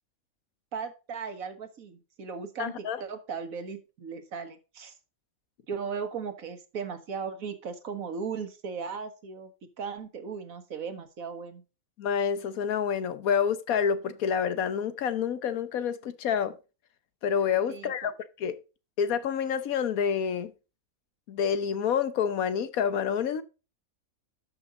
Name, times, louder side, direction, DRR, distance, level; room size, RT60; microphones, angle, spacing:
voice 1, 0.7-4.9 5.7-9.5 9.8-11.6 17.7-18.1, right 6 dB, 75° right, 1.8 m, -37 dB
voice 2, 2.6-3.0 12.0-16.5 17.2-18.1 18.4-18.5 19.0-20.5 21.3-23.4, left 7 dB, 80° left, 1.4 m, -28 dB
12.0 x 5.8 x 3.7 m
omnidirectional pair, 1.5 m